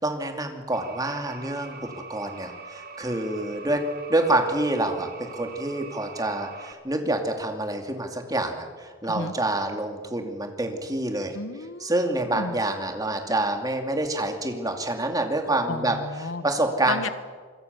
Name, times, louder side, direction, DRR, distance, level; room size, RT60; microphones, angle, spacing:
voice 1, 0.0-3.8 4.1-11.4 11.8-16.0 16.4-17.1, right 2 dB, 15° right, 4 dB, 2.7 m, -27 dB
sound 1, 0.7-6.7, right 4 dB, 45° right, 2.0 m, -43 dB
voice 2, 11.3-11.9 12.3-12.6 15.6-16.5 16.9-17.1, left 3 dB, 70° left, 12 dB, 1.3 m, -32 dB
27.0 x 22.0 x 7.1 m, 1.5 s
head